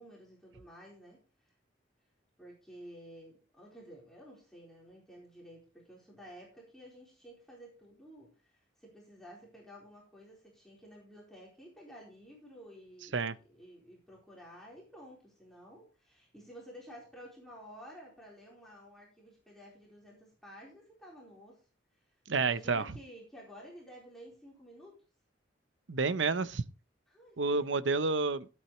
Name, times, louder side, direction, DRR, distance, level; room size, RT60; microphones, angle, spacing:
voice 1, 0.0-1.5 2.4-21.6 21.9-25.0 27.1-27.8, equal, ahead, 4.2 m, -53 dB
voice 2, 22.3-22.9 25.9-26.6 27.4-28.5, right 4 dB, 70° right, 0.8 m, -29 dB
16.0 x 8.8 x 3.1 m
head